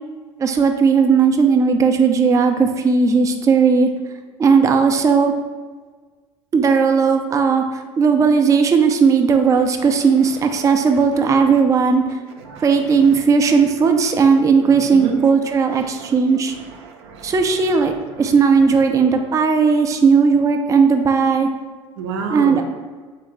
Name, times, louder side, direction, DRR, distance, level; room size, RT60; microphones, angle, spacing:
voice 1, 0.4-3.9 4.4-5.3 6.5-12.2 12.6-16.5 17.2-17.9 18.2-21.5 22.3-22.6, right 5 dB, 20° right, 5 dB, 0.3 m, -16 dB
voice 2, 12.4-12.7 14.9-15.2 15.8-16.1 16.5-17.3 22.0-22.6, right 5 dB, 80° right, 3 dB, 0.5 m, -29 dB
3.4 x 2.5 x 3.1 m, 1.4 s
hypercardioid pair, 70°, 14 cm